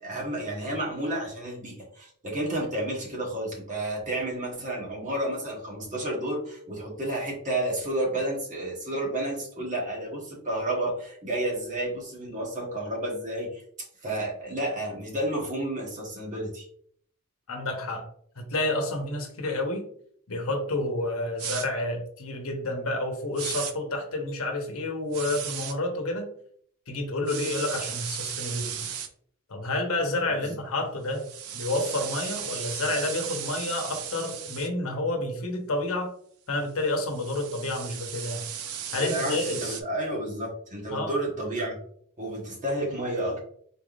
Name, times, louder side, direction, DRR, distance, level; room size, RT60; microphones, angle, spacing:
voice 1, 0.0-13.6 14.0-16.7 30.3-30.6 38.9-41.8 42.2-43.4, right 1 dB, 35° right, -2 dB, 1.2 m, -31 dB
voice 2, 17.5-18.1 18.4-19.9 20.3-26.3 26.9-28.9 29.5-31.3 31.5-36.1 36.5-38.4 38.9-39.8 40.9-41.1, left 2 dB, 70° left, 3 dB, 1.0 m, -29 dB
sound 1, 21.4-21.7 23.4-23.7 25.1-25.7 27.3-29.1 31.1-34.7 36.8-39.8, right 9 dB, 70° right, 0.5 m, -36 dB
4.2 x 3.5 x 2.4 m, 0.62 s
head